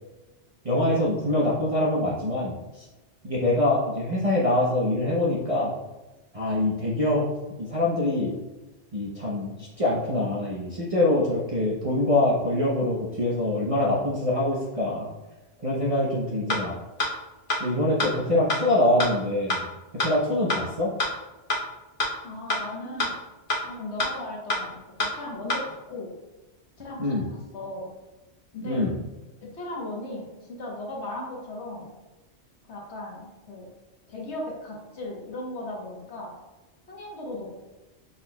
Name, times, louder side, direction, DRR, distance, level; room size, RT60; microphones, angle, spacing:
voice 1, 0.6-2.8 3.2-5.7 6.3-7.3 7.6-8.3 8.9-15.1 15.6-16.8 17.6-19.7 19.9-20.9 27.0-27.3 28.6-29.0, left 1 dB, 35° right, -6 dB, 0.7 m, -24 dB
sound 1, 16.5-16.6 17.0-17.1 17.5-17.6 18.0-18.1 18.5-18.6 19.0-19.1 19.5-19.6 20.0-20.1 20.5-20.6 21.0-21.1 21.5-21.6 22.0-22.1 22.5-22.6 23.0-23.1 23.5-23.6 24.0-24.1 24.5-24.6 25.0-25.1 25.5-25.6, left 2 dB, 50° left, 1.0 m, -24 dB
voice 2, 22.2-23.1 23.6-26.1 26.8-27.9 28.5-28.9 29.4-31.9 32.7-33.7 34.1-36.3 36.9-37.5, left 1 dB, 70° left, -2 dB, 1.4 m, -37 dB
6.1 x 4.0 x 2.2 m, 1.1 s
omnidirectional pair, 1.2 m